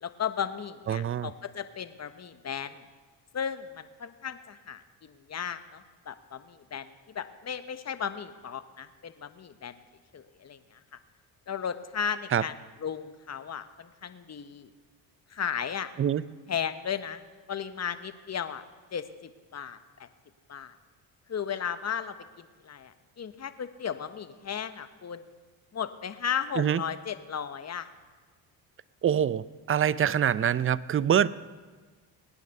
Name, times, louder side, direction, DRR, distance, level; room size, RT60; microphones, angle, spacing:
voice 1, 0.0-2.8 3.3-9.8 10.1-10.8 11.5-12.5 12.8-14.7 15.3-15.9 16.5-17.2 17.5-18.6 18.9-20.1 20.5-20.7 21.3-25.2 25.7-27.9, left 7 dB, 35° left, 11 dB, 1.2 m, -35 dB
voice 2, 0.9-1.3 12.3-12.4 16.0-16.2 26.6-26.8 29.0-31.3, right 9 dB, 30° right, 18 dB, 0.5 m, -25 dB
20.0 x 9.4 x 6.7 m, 1.4 s
supercardioid pair, 75°, 42 cm